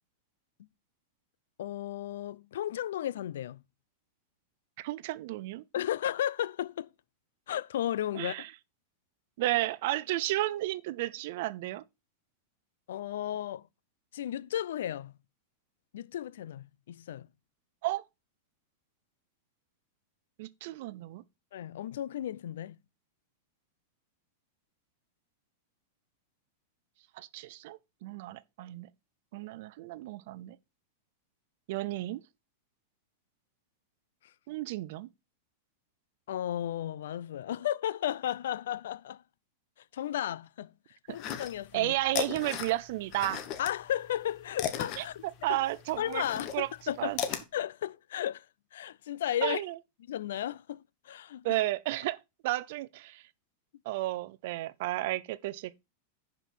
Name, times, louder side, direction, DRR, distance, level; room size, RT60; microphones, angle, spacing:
voice 1, 1.6-3.6 5.7-6.9 7.5-8.3 12.9-13.6 14.1-15.2 15.9-17.3 21.5-22.8 36.3-39.2 39.9-40.7 41.1-41.9 43.6-45.6 46.0-47.1 47.5-48.5 48.7-49.6 50.1-51.6, left 11 dB, 80° left, 0.5 m, -34 dB
voice 2, 4.8-5.6 8.1-8.5 9.4-11.8 17.8-18.0 20.4-21.2 27.2-28.9 29.3-30.6 31.7-32.2 34.5-35.1 41.7-43.4 45.0-46.2 46.5-46.7 47.0-47.2 49.4-49.8 51.4-53.2 53.9-55.8, right 17 dB, 55° right, 0.5 m, -33 dB
sound 1, 41.1-41.8 42.1-43.7 44.1-47.4, left 9 dB, 35° left, 1.2 m, -35 dB
10.5 x 5.4 x 4.4 m
supercardioid pair, 165°, 0 cm